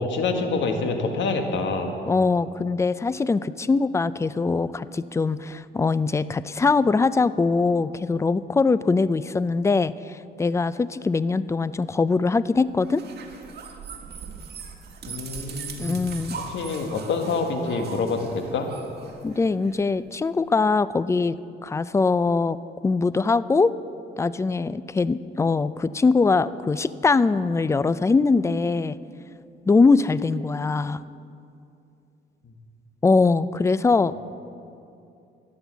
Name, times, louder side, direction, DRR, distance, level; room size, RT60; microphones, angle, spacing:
voice 1, 0.0-1.9 15.1-15.9 16.5-18.7 34.1-34.2, left 4 dB, 70° left, 4 dB, 1.6 m, -26 dB
voice 2, 2.1-13.0 15.8-16.4 19.2-21.4 21.6-22.6 22.8-23.7 24.2-29.0 29.7-31.0 33.0-34.1, left 4 dB, 15° left, 17 dB, 0.3 m, -22 dB
sound 1, 12.8-19.8, right 5 dB, 55° right, 1.7 m, -40 dB
13.0 x 9.8 x 7.2 m, 2.6 s
cardioid pair, 90°, 20 cm